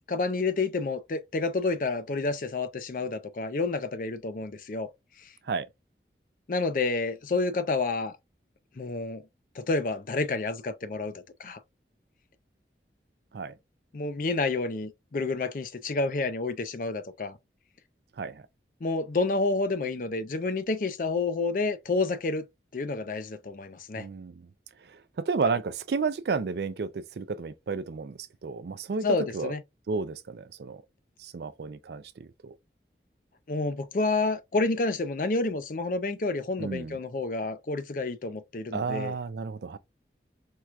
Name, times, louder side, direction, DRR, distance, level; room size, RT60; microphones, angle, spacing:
voice 1, 0.1-4.9 5.2-5.3 6.5-8.2 8.8-9.2 9.5-11.6 13.9-17.4 18.8-22.4 22.7-24.1 29.0-29.6 33.5-39.2, left 3 dB, 50° left, 0.4 m, -29 dB
voice 2, 18.2-18.5 24.0-24.5 24.8-29.1 29.3-29.5 29.9-30.8 31.2-32.6 36.6-37.0 38.7-39.8, right 4 dB, 65° right, 0.4 m, -32 dB
4.5 x 2.3 x 2.4 m
head